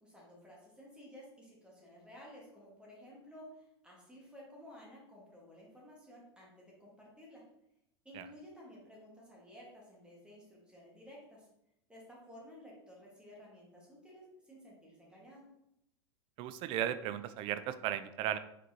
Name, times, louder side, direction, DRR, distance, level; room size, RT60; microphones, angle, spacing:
voice 1, 0.0-7.4 8.1-11.5 11.9-15.5, equal, 5° right, -4 dB, 1.7 m, -54 dB
voice 2, 16.4-18.4, right 11 dB, 40° right, 11 dB, 0.4 m, -36 dB
4.5 x 4.1 x 2.9 m, 0.81 s
hypercardioid pair, 95°, 15 cm